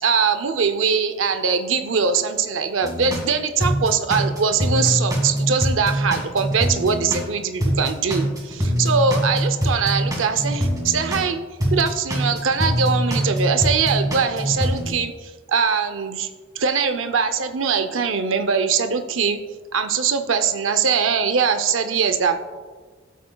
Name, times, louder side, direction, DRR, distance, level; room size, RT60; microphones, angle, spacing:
voice 1, 0.0-11.4 11.7-16.3 16.5-19.4 19.7-22.4, right 5 dB, 85° right, 8 dB, 0.6 m, -22 dB
sound 1, 2.8-3.3 3.6-7.3 7.6-11.3 11.6-14.9, equal, 20° right, 2.0 m, -23 dB
14.0 x 8.3 x 2.3 m, 1.4 s
head